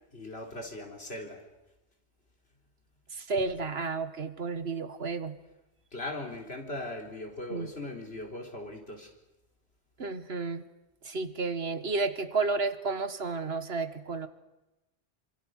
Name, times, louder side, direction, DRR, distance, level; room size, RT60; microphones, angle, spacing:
voice 1, 0.1-1.4 5.9-9.1, left 1 dB, 70° left, 2 dB, 4.1 m, -39 dB
voice 2, 3.1-5.4 7.5-7.7 10.0-10.6 11.0-14.3, right 4 dB, 70° right, 11 dB, 1.7 m, -32 dB
28.5 x 26.0 x 6.5 m, 0.99 s
omnidirectional pair, 1.1 m